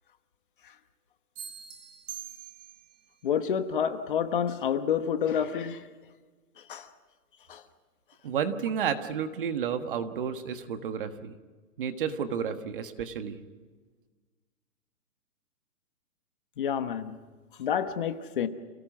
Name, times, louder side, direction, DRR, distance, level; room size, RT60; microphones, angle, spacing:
sound 1, 1.4-3.0, right 10 dB, 10° right, 1.0 m, -43 dB
voice 1, 3.2-5.8 6.6-6.9 7.5-7.6 16.6-17.2 17.6-18.5, left 8 dB, 35° left, 1.2 m, -29 dB
voice 2, 8.2-11.3 11.8-13.4, right 7 dB, 35° right, 1.5 m, -31 dB
29.0 x 18.5 x 6.1 m
hypercardioid pair, 170°, 44 cm